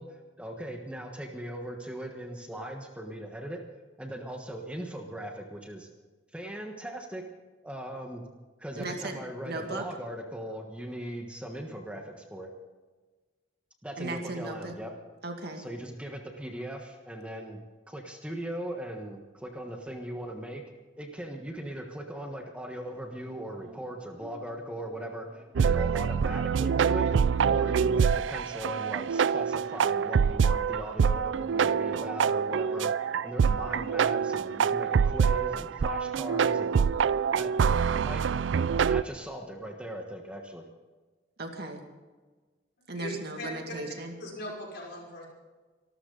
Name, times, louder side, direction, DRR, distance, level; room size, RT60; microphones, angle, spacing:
voice 1, 0.0-3.6 4.0-5.9 6.3-7.2 7.6-8.2 8.6-12.5 13.8-14.9 15.5-17.6 17.9-20.6 21.0-27.1 27.4-32.9 33.2-36.9 37.3-38.2 38.6-40.7, right 1 dB, 5° right, 2 dB, 1.4 m, -39 dB
voice 2, 8.8-9.2 9.4-9.8 14.0-14.7 15.2-15.6 41.4-41.8 42.9-44.1, right 2 dB, 60° right, 3 dB, 2.2 m, -36 dB
sound 1, 22.8-32.9, right 1 dB, 30° right, 3.1 m, -57 dB
sound 2, 25.6-39.0, right 6 dB, 75° right, 0.4 m, -25 dB
voice 3, 42.9-43.8 44.2-45.3, left 1 dB, 60° left, -1 dB, 5.7 m, -39 dB
25.5 x 13.0 x 4.0 m, 1.3 s
head